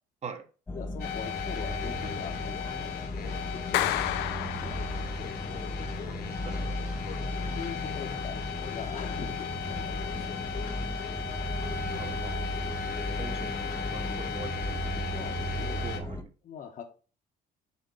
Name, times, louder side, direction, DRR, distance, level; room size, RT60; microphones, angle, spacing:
voice 1, 0.7-4.5 7.5-8.4 8.7-10.2 15.1-15.8 16.4-16.8, left 7 dB, 50° left, 4 dB, 1.1 m, -42 dB
sound 1, 0.7-16.2, equal, 15° left, 0.6 m, -35 dB
sound 2, 1.0-16.0, left 7 dB, 65° left, 1.5 m, -37 dB
Clapping, 3.7-5.4, left 13 dB, 85° left, 0.5 m, -31 dB
voice 2, 11.9-12.5 13.2-15.1 15.5-16.3, right 5 dB, 40° right, 6 dB, 1.2 m, -43 dB
6.6 x 2.8 x 5.4 m, 0.36 s
cardioid pair, 110°, 17 cm